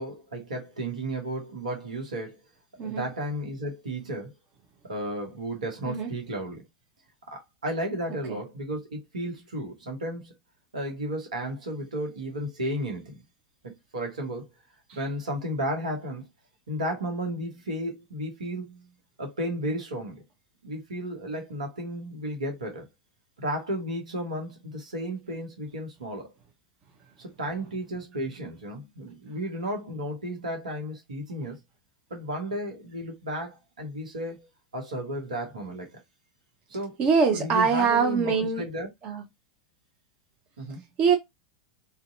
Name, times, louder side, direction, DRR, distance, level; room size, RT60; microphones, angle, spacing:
voice 1, 0.0-2.4 2.8-4.3 4.8-6.6 7.3-10.3 10.7-13.2 13.6-14.5 14.9-16.3 16.7-18.9 19.2-20.2 20.6-22.9 23.4-26.3 27.2-31.6 32.1-34.5 34.7-36.0 36.7-37.0 37.3-38.9 40.6-40.8, right 1 dB, 75° right, 1.0 m, -33 dB
voice 2, 37.0-38.6 39.0-39.2 41.0-41.2, right 5 dB, 35° right, 0.7 m, -23 dB
2.6 x 2.2 x 2.6 m
figure-of-eight pair, 90°, 4 cm